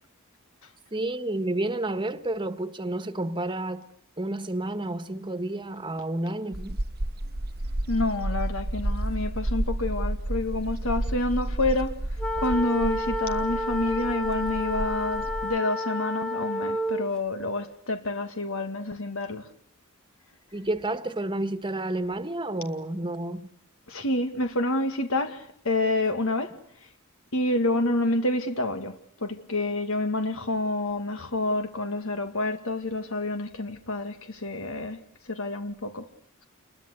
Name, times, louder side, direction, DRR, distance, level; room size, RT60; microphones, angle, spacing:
voice 1, 0.9-3.9 4.2-6.8 20.5-23.5, right 1 dB, 20° right, 1.6 m, -30 dB
sound 1, 6.5-15.6, right 1 dB, 45° right, 1.1 m, -31 dB
voice 2, 7.9-12.0 12.4-19.5 23.9-26.9 27.3-35.0 35.2-36.1, left 2 dB, 65° left, 2.1 m, -28 dB
sound 2, 12.2-17.1, left 1 dB, 5° left, 1.4 m, -30 dB
29.0 x 22.0 x 8.3 m
head